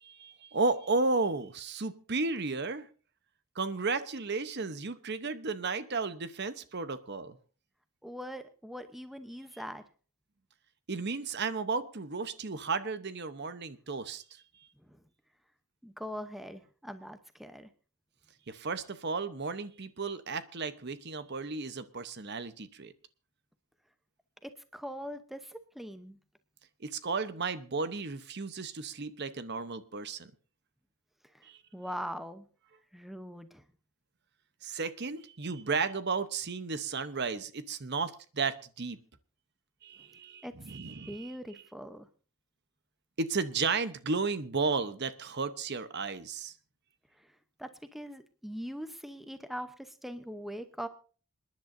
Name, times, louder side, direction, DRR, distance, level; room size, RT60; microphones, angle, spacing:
voice 1, 0.1-2.9 3.5-7.4 10.9-14.4 18.5-22.9 26.8-30.3 31.4-31.6 34.6-39.0 39.8-41.3 43.2-46.5, right 4 dB, 50° right, 12 dB, 0.9 m, -33 dB
voice 2, 8.0-9.8 14.9-15.0 15.8-17.7 24.4-26.2 31.3-32.4 32.9-33.6 40.4-40.5 41.1-42.1 47.2-50.9, equal, ahead, 9 dB, 0.7 m, -42 dB
27.5 x 10.5 x 2.6 m, 0.39 s
head